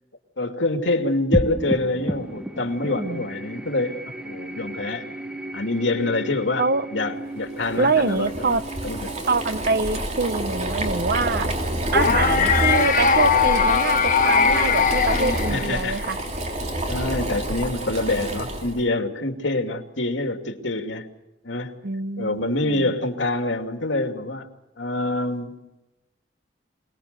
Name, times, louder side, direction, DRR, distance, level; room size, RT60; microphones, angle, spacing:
voice 1, 0.4-5.1 5.5-9.2 12.0-12.2 15.5-16.0 16.9-21.1 21.4-21.8 22.2-24.5 24.8-25.6, left 2 dB, 80° left, 2.6 m, -26 dB
sound 1, 1.3-12.0, equal, 5° right, 1.0 m, -33 dB
voice 2, 2.8-3.3 6.6-6.9 7.8-8.6 9.3-11.5 11.9-16.2 21.8-22.9, right 4 dB, 55° right, 0.9 m, -25 dB
Boiling, 7.6-18.8, right 1 dB, 40° right, 3.3 m, -28 dB
sound 2, 11.9-16.1, left 5 dB, 45° left, 1.6 m, -20 dB
27.5 x 19.5 x 6.9 m
head